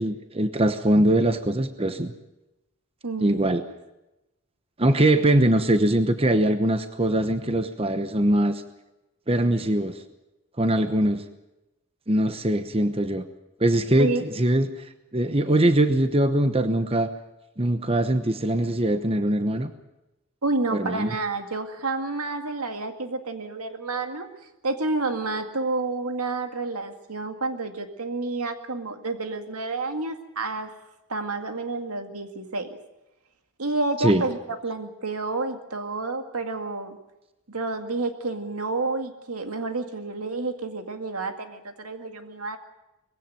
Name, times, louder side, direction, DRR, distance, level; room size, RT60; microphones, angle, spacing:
voice 1, 0.0-2.1 3.2-3.6 4.8-8.6 9.3-10.0 10.6-11.2 12.1-13.2 13.6-14.7 15.1-17.1 17.6-19.7 20.7-21.1 34.0-34.2, right 1 dB, 25° right, 9 dB, 1.0 m, -22 dB
voice 2, 3.0-3.5 14.0-14.3 20.4-24.3 24.6-30.7 31.1-32.8 33.6-37.0 37.5-42.6, right 3 dB, 90° right, 6 dB, 2.1 m, -29 dB
20.5 x 16.0 x 9.1 m, 0.96 s
head